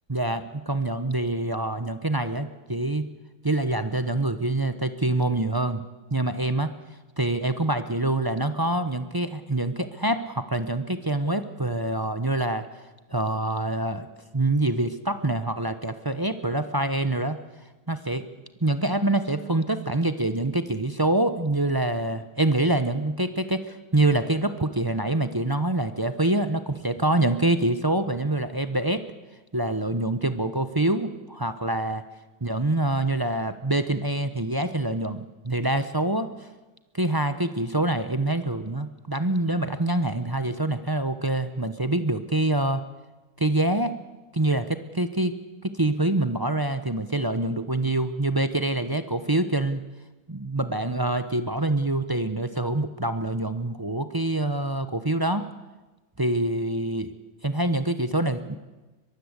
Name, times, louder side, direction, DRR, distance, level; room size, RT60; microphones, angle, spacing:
voice 1, 0.1-3.1 3.4-5.8 6.1-6.7 7.2-12.7 13.1-14.1 14.3-17.4 17.9-18.2 18.6-29.0 29.5-32.0 32.4-36.5 36.9-42.8 43.4-43.9 44.3-45.4 45.6-49.8 50.3-55.4 56.2-57.1 57.4-58.6, right 2 dB, 25° right, 10 dB, 0.4 m, -25 dB
23.0 x 22.0 x 8.2 m, 1.1 s
omnidirectional pair, 2.2 m